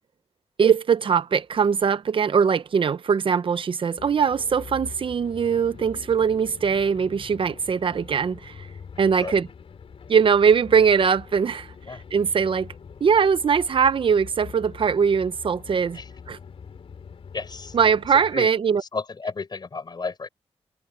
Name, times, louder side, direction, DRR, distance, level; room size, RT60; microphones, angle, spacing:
voice 1, 0.6-8.7 9.0-9.5 10.1-12.7 13.0-16.0 16.3-16.4 17.7-18.8, right 6 dB, 55° right, 0.7 m, -21 dB
sound 1, 4.0-18.4, left 6 dB, 65° left, 3.1 m, -44 dB
voice 2, 17.3-17.8 18.3-18.5 18.9-20.3, left 4 dB, 40° left, 4.5 m, -32 dB
wide cardioid pair, 105°, 11 cm